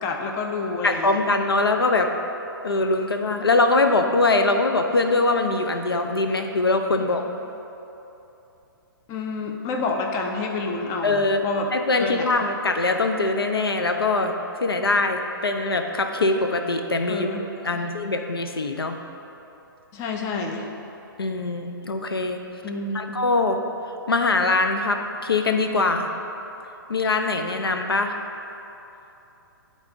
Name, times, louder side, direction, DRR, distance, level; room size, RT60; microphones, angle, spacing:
voice 1, 0.0-1.2 7.0-7.1 9.1-11.7 12.0-12.3 17.1-17.5 17.7-17.8 19.9-20.7 22.6-23.2, left 3 dB, 25° left, 2 dB, 0.6 m, -29 dB
voice 2, 0.8-2.1 2.6-7.2 11.0-11.4 11.7-14.3 14.6-17.3 17.6-19.0 21.2-22.4 22.9-23.6 24.1-26.1 26.9-28.2, left 3 dB, 85° left, 5 dB, 0.5 m, -22 dB
10.5 x 4.0 x 3.5 m, 3.0 s
figure-of-eight pair, 125°, 12 cm